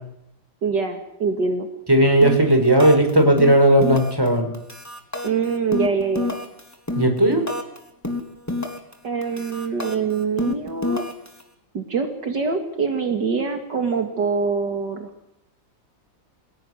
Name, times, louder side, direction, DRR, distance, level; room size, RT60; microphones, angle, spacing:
voice 1, 0.6-1.7 5.2-6.4 9.0-11.1 11.7-15.1, right 5 dB, 60° right, 6 dB, 2.7 m, -24 dB
voice 2, 1.9-4.5 6.9-7.4, right 1 dB, 10° right, 6 dB, 5.1 m, -16 dB
sound 1, 2.2-2.5 2.8-3.1 3.4-4.3 4.5-7.8 8.0-8.9 9.2-11.4, left 2 dB, 10° left, 3.4 m, -28 dB
28.5 x 17.0 x 8.0 m, 0.82 s
omnidirectional pair, 2.1 m